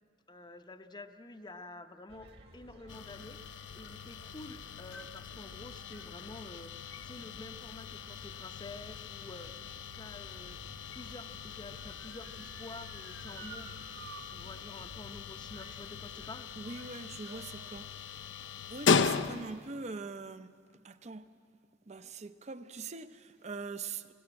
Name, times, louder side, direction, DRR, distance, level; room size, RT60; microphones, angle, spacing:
voice 1, 0.3-2.3 2.5-10.6 10.9-13.7 14.3-16.5, left 2 dB, 20° left, 0.7 m, -49 dB
sound 1, 2.1-16.3, right 1 dB, 55° right, 2.0 m, -56 dB
sound 2, 2.9-19.7, left 6 dB, 70° left, 0.5 m, -38 dB
Motor vehicle (road) / Siren, 9.5-14.2 14.6-14.7 15.5-15.9 16.2-17.9 18.6-18.7, right 5 dB, 85° right, 3.1 m, -54 dB
voice 2, 16.6-18.3 18.7-21.3 21.9-24.1, right 4 dB, 35° right, 0.6 m, -43 dB
19.0 x 16.0 x 8.9 m
head